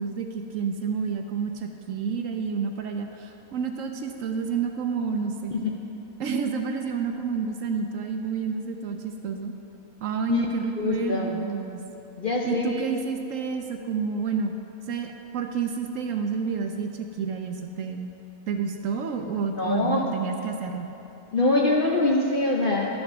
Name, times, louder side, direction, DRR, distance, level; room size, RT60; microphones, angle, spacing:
voice 1, 0.0-5.5 6.2-9.5 10.0-11.8 12.4-14.5 14.9-18.1 18.5-20.9, right 6 dB, 65° right, 4 dB, 0.9 m, -29 dB
voice 2, 10.8-11.4 12.2-12.8 19.6-20.0 21.3-23.0, left 2 dB, 50° left, -2 dB, 0.6 m, -24 dB
11.5 x 5.2 x 6.1 m, 3.0 s
omnidirectional pair, 1.6 m